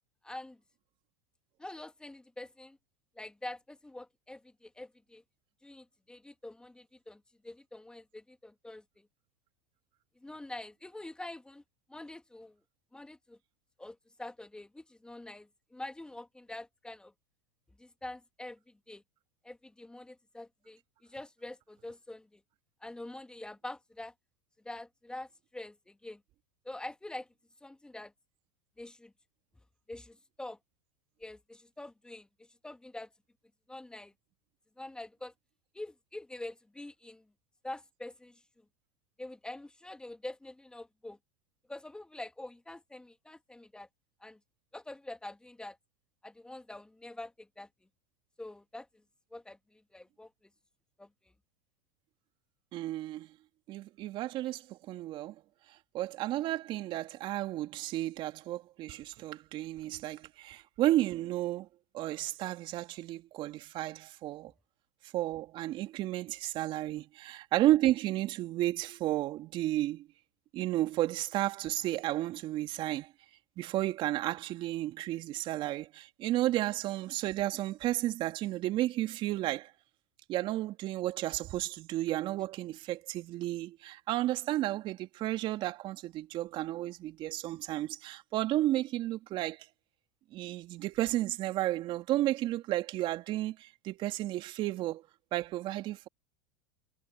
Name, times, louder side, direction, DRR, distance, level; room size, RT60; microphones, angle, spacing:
voice 1, 0.2-0.6 1.6-2.8 3.2-5.2 5.6-9.1 10.2-11.6 11.9-12.6 12.9-13.4 13.8-17.1 17.8-18.6 18.9-19.0 19.4-22.4 22.8-24.1 24.6-26.2 26.6-27.3 27.6-28.1 28.8-29.1 29.9-30.6 31.2-33.1 33.7-34.1 34.8-35.3 35.7-37.2 37.6-38.6 39.2-41.2 41.7-43.9 44.2-44.4 44.7-45.8 46.2-47.7 48.4-48.9 49.3-50.3 51.0-51.1, left 2 dB, 5° left, 2.2 m, -45 dB
voice 2, 52.7-53.3 53.7-55.3 55.9-61.7 61.9-64.5 65.1-70.1 70.5-73.1 73.6-79.7 80.3-89.7 90.3-95.0 95.3-96.1, right 15 dB, 45° right, 2.6 m, -32 dB
hypercardioid pair, 95°, 11 cm